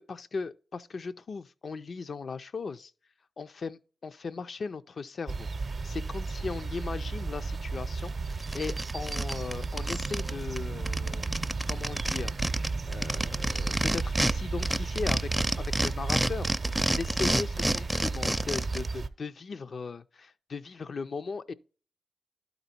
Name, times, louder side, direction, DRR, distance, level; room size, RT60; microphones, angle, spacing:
voice 1, 0.0-2.9 3.4-11.3 11.7-12.3 12.9-15.3 15.6-21.5, left 4 dB, 65° left, 0.4 m, -38 dB
sound 1, 5.3-19.1, right 4 dB, 60° right, 0.6 m, -33 dB
sound 2, 8.0-8.1 8.4-10.3 10.6-10.7 10.9-14.3 14.6-18.9, right 1 dB, 10° right, 0.5 m, -29 dB
11.5 x 4.0 x 4.3 m
supercardioid pair, 40°, 0 cm